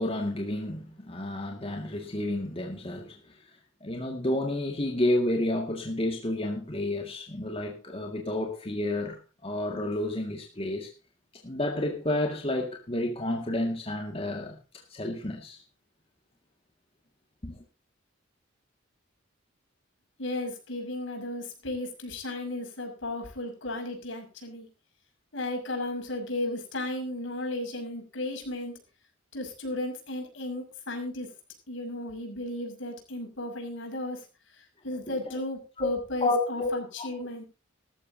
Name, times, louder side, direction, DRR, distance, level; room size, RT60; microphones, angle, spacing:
voice 1, 0.0-3.4 3.8-10.9 11.4-14.6 14.9-15.6 17.4-17.6 35.3-35.4 35.8-35.9 36.2-36.7 37.0-37.1, left 1 dB, 30° left, 2 dB, 2.0 m, -30 dB
voice 2, 20.2-24.7 25.3-28.8 29.3-31.3 31.7-34.3 34.5-37.4, left 1 dB, 65° left, 3 dB, 6.1 m, -34 dB
18.5 x 13.5 x 2.8 m, 0.32 s
head